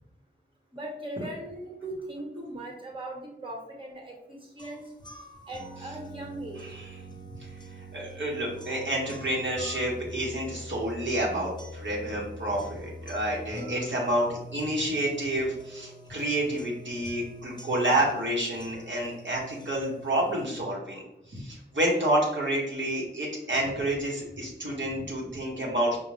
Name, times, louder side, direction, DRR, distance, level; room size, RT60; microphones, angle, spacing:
voice 1, 0.7-4.8 5.5-6.6, right 1 dB, 25° right, -1 dB, 1.2 m, -39 dB
sound 1, 4.6-20.6, equal, 20° left, 0.6 m, -44 dB
voice 2, 7.9-21.0 21.3-26.0, right 1 dB, 65° right, -4 dB, 0.9 m, -29 dB
5.0 x 2.1 x 3.1 m, 0.85 s
wide cardioid pair, 60°, 20 cm